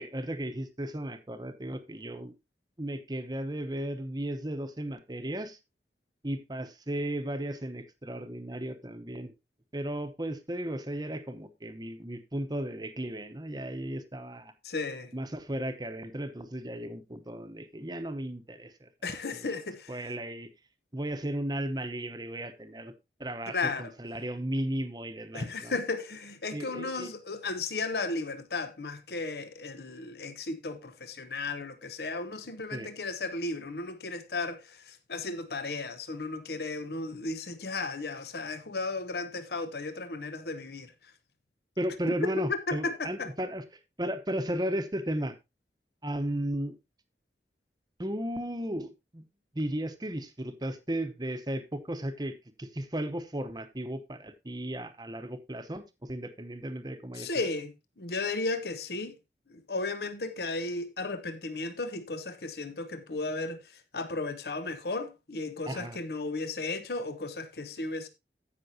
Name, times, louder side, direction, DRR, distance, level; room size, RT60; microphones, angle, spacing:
voice 1, 0.0-2.3 2.8-5.6 6.2-9.3 9.7-14.5 15.1-18.9 19.3-19.5 19.9-20.5 20.9-22.9 23.2-25.7 26.5-27.1 32.7-32.9 41.8-43.6 44.0-45.3 46.0-46.7 48.0-49.2 49.5-57.5 65.7-66.0, right 1 dB, 25° right, 0.9 m, -35 dB
voice 2, 14.6-15.1 19.0-19.9 23.5-23.9 25.3-40.9 42.2-43.3 57.1-59.1 59.5-63.6 63.9-68.1, left 3 dB, 65° left, 0.9 m, -34 dB
16.0 x 6.0 x 2.8 m
head